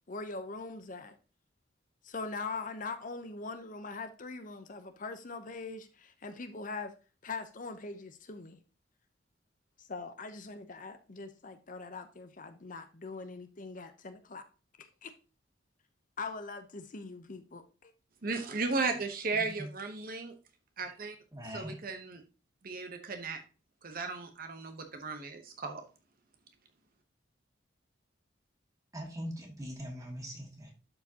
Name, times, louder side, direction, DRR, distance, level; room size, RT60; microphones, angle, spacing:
voice 1, 0.1-1.2 2.0-6.9 7.2-8.6 9.8-14.4 15.0-15.1 16.2-17.9, left 3 dB, 45° left, 0.7 m, -42 dB
voice 2, 18.2-20.3 20.8-21.1 21.5-22.2 22.6-23.4 23.8-25.8, right 4 dB, 50° right, 0.9 m, -35 dB
voice 3, 19.3-19.7 21.3-21.8 28.9-30.7, equal, 20° right, 2.2 m, -41 dB
11.5 x 4.8 x 2.8 m
head